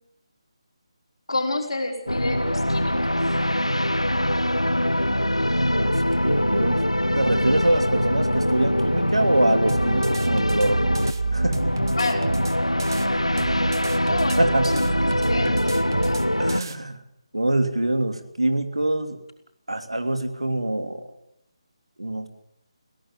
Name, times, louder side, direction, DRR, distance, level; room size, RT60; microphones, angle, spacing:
voice 1, 1.3-3.2 12.0-12.2 13.0-13.5 14.0-14.9 15.2-16.2, left 2 dB, 60° left, 2 dB, 5.2 m, -30 dB
sound 1, 2.1-16.6, equal, 85° left, 0.9 m, -23 dB
voice 2, 6.2-6.8 7.1-10.9 11.3-11.6 14.4-14.7 16.4-17.0 17.3-19.2 19.7-21.0 22.0-22.3, right 1 dB, 75° right, 7 dB, 2.9 m, -24 dB
sound 2, 9.7-13.1 13.4-16.8, right 4 dB, 45° right, 1.7 m, -30 dB
22.0 x 17.5 x 9.0 m, 0.77 s
figure-of-eight pair, 150°, 3 cm